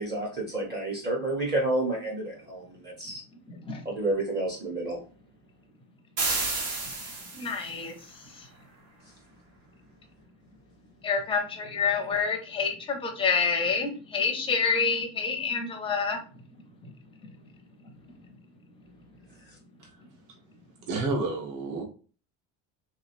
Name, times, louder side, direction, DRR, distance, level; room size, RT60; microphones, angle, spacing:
voice 1, 0.0-3.2 3.8-5.0, right 2 dB, 25° right, -1 dB, 0.7 m, -30 dB
voice 2, 3.5-3.8 7.3-8.0 8.3-8.5 11.0-16.2, left 5 dB, 15° left, 3 dB, 0.5 m, -28 dB
sound 1, 6.2-7.7, right 3 dB, 85° right, 1.6 m, -30 dB
voice 3, 20.9-21.8, right 3 dB, 50° right, 1 dB, 1.0 m, -30 dB
3.2 x 3.0 x 2.4 m, 0.36 s
cardioid pair, 170°, 41 cm